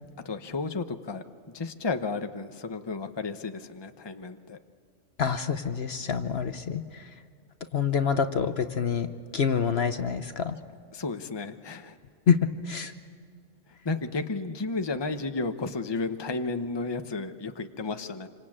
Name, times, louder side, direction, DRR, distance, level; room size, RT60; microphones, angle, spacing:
voice 1, 0.2-1.2 1.5-4.6 10.9-12.0 13.8-18.3, left 3 dB, 20° left, 8 dB, 0.9 m, -32 dB
voice 2, 5.2-7.1 7.7-10.6 12.3-12.9, left 6 dB, 55° left, 9 dB, 1.1 m, -27 dB
27.0 x 25.5 x 8.8 m, 2.2 s
omnidirectional pair, 1.3 m